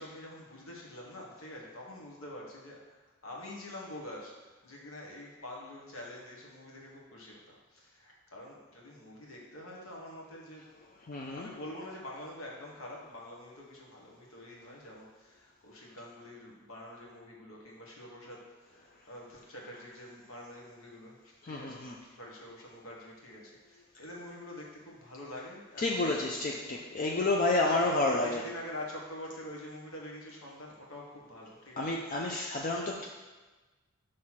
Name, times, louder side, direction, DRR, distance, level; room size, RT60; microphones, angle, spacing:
voice 1, 0.0-26.8 27.7-32.3 32.6-32.9, left 1 dB, 90° left, -2 dB, 1.3 m, -46 dB
voice 2, 11.1-11.5 21.4-22.0 25.8-28.4 31.8-33.1, left 2 dB, 40° left, -1 dB, 0.4 m, -30 dB
6.1 x 3.2 x 5.7 m, 1.2 s
head